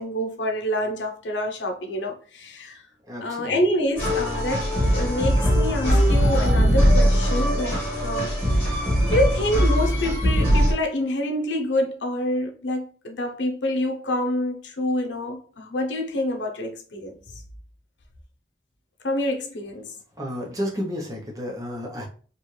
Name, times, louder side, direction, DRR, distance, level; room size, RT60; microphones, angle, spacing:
voice 1, 0.0-2.8 3.2-8.7 9.0-17.4 19.0-20.0, left 1 dB, 90° left, 0.8 m, -27 dB
voice 2, 3.1-3.5 20.2-22.1, equal, 20° right, 0.8 m, -31 dB
sound 1, 4.0-10.7, equal, 10° left, 1.5 m, -20 dB
4.5 x 2.5 x 3.2 m
head